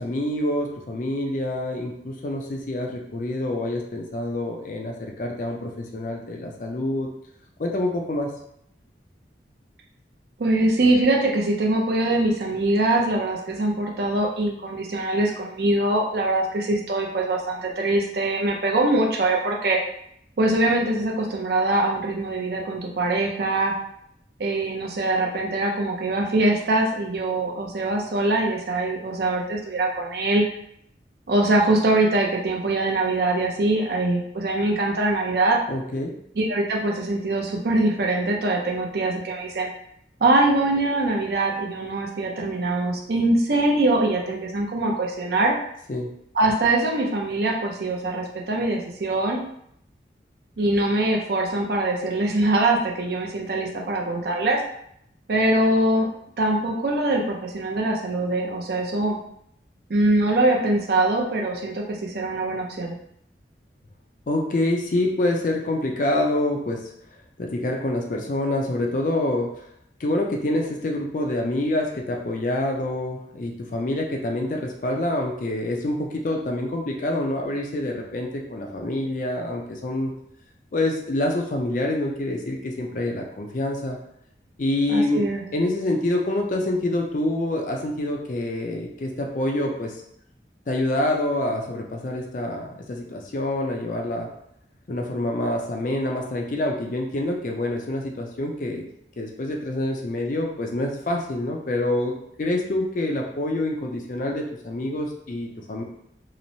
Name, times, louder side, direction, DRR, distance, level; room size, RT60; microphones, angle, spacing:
voice 1, 0.0-7.1 7.6-8.3 35.7-36.1 45.9-46.1 64.3-66.9 67.4-69.6 70.0-80.1 80.7-84.0 84.6-89.9 90.7-94.3 94.9-98.8 99.2-102.1 102.4-105.8, left 1 dB, 45° left, 1 dB, 0.4 m, -26 dB
voice 2, 10.4-19.8 20.4-23.7 24.4-30.4 31.3-35.6 36.4-39.7 40.2-45.6 46.3-49.4 50.6-54.6 55.3-56.1 56.4-59.2 59.9-63.0 84.9-85.4, right 2 dB, 60° right, 0 dB, 0.5 m, -23 dB
2.9 x 2.0 x 2.6 m, 0.72 s
head